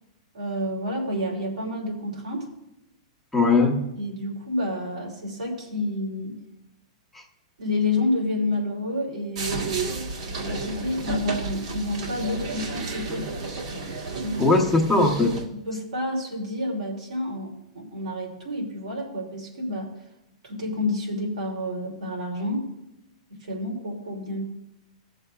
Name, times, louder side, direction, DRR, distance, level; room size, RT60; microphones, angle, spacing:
voice 1, 0.3-2.5 4.0-6.4 7.6-10.1 10.4-13.3 14.2-14.5 15.6-19.9 20.4-22.7 23.4-24.4, left 1 dB, 90° right, -2 dB, 3.0 m, -29 dB
voice 2, 3.3-3.8 7.1-7.2 14.4-15.4, left 3 dB, 5° left, -2 dB, 1.0 m, -20 dB
sound 1, 9.4-15.5, right 3 dB, 65° right, 1.6 m, -32 dB
19.5 x 6.6 x 2.4 m, 0.87 s
hypercardioid pair, 155°, 4 cm